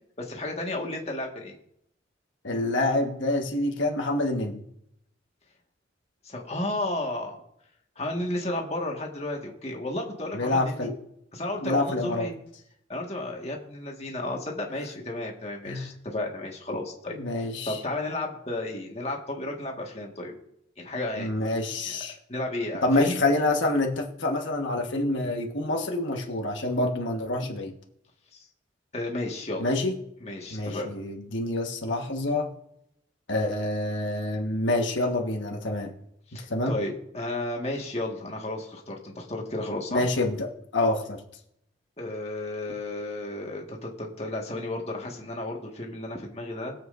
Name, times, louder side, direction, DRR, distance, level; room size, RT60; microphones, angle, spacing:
voice 1, 0.2-1.6 6.2-7.4 7.9-10.9 11.3-12.3 12.9-20.3 20.8-21.4 21.8-21.9 22.3-23.2 28.9-29.7 30.2-30.9 36.3-40.1 42.0-46.7, left 1 dB, 30° left, 0 dB, 1.7 m, -33 dB
voice 2, 2.4-4.6 10.3-10.9 11.6-12.3 15.7-15.9 17.1-17.8 21.2-22.2 22.8-27.7 29.6-29.9 30.5-32.5 33.3-35.9 36.5-36.8 39.9-41.2, left 2 dB, 75° left, 1 dB, 1.5 m, -27 dB
21.0 x 7.7 x 2.6 m, 0.75 s
head